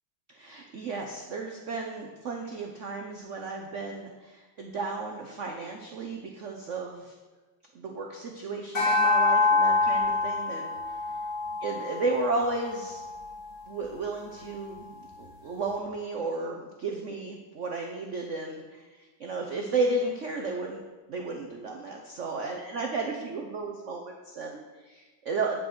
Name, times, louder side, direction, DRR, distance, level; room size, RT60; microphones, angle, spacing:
voice 1, 0.3-7.1 7.7-10.8 11.6-13.0 13.7-20.8 21.1-25.6, right 3 dB, 85° right, 2 dB, 0.6 m, -33 dB
sound 1, 8.7-13.3, left 3 dB, 35° left, 1.6 m, -26 dB
9.8 x 4.9 x 6.1 m, 1.3 s
omnidirectional pair, 2.3 m